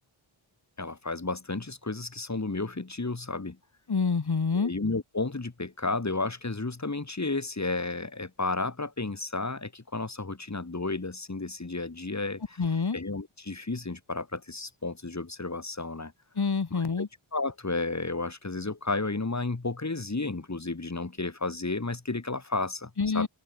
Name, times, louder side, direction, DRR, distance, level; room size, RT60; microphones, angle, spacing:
voice 1, 0.8-3.6 4.5-12.6 12.9-16.1 16.7-17.1 17.3-23.3, left 3 dB, 35° left, 3.4 m, -32 dB
voice 2, 3.9-4.7 12.6-13.0 16.4-17.1 23.0-23.3, left 5 dB, 50° left, 2.4 m, -27 dB
open air
wide cardioid pair, 55°, 50 cm